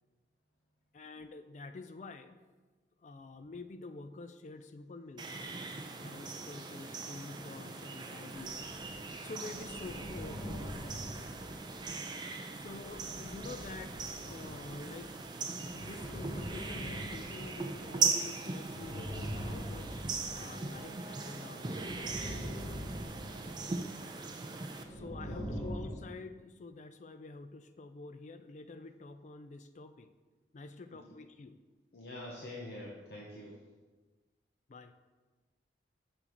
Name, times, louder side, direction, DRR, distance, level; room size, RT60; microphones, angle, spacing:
voice 1, 0.9-2.4 3.0-5.3 6.0-8.7 9.2-10.7 12.5-14.0 14.2-15.1 15.7-22.2 24.9-30.1 30.5-31.6 34.7-35.0, left 3 dB, 40° left, 10 dB, 0.3 m, -48 dB
Birds Chirping, 5.2-24.8, right 4 dB, 25° right, 0.4 m, -39 dB
sound 1, 8.3-9.1 9.3-12.2 12.6-15.2 15.5-18.1 18.6-21.1 21.6-24.2 24.7-25.9, equal, 10° left, 0.9 m, -44 dB
voice 2, 31.9-33.6, left 1 dB, 60° left, -3 dB, 0.8 m, -45 dB
6.7 x 6.1 x 2.9 m, 1.3 s
head